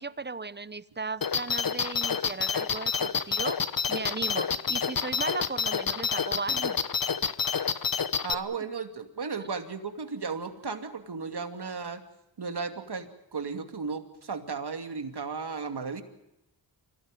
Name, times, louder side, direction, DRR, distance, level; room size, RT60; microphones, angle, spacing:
voice 1, 0.0-3.6 3.9-6.8 8.3-8.4 9.4-9.5, right 3 dB, 20° right, 17 dB, 0.9 m, -36 dB
sound 1, 1.2-8.3, left 6 dB, 45° left, 1.2 m, -28 dB
voice 2, 8.2-12.0 12.4-16.0, right 5 dB, 55° right, 7 dB, 2.7 m, -35 dB
25.5 x 17.0 x 9.2 m, 0.87 s
cardioid pair, 65°, 48 cm